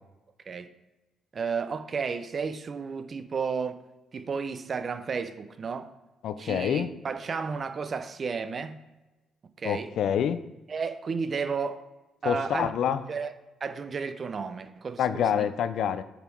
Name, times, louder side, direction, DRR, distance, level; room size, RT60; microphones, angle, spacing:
voice 1, 1.3-3.8 4.1-5.9 6.4-8.8 9.6-9.9 10.7-11.9 12.2-12.7 13.1-13.3 13.6-15.5, right 5 dB, 45° right, 0.6 m, -32 dB
voice 2, 6.2-6.9 9.6-10.4 12.2-13.0 15.0-16.0, left 8 dB, 75° left, 0.4 m, -27 dB
6.8 x 6.3 x 4.5 m
cardioid pair, 90°, 0 cm